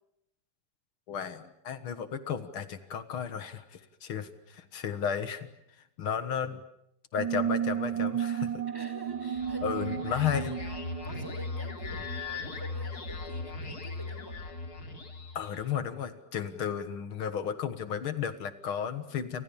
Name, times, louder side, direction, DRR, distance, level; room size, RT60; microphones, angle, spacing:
voice 1, 1.1-5.5 5.8-6.6 7.1-8.6 9.6-10.6 15.4-19.4, left 8 dB, 80° left, 11 dB, 2.4 m, -33 dB
sound 1, 7.2-12.4, right 9 dB, 70° right, 2.2 m, -33 dB
voice 2, 8.7-10.8 11.0-14.4, equal, 10° right, 7 dB, 5.2 m, -48 dB
sound 2, 9.1-15.7, left 3 dB, 50° left, 3.3 m, -39 dB
30.0 x 26.5 x 7.1 m, 0.79 s
omnidirectional pair, 2.3 m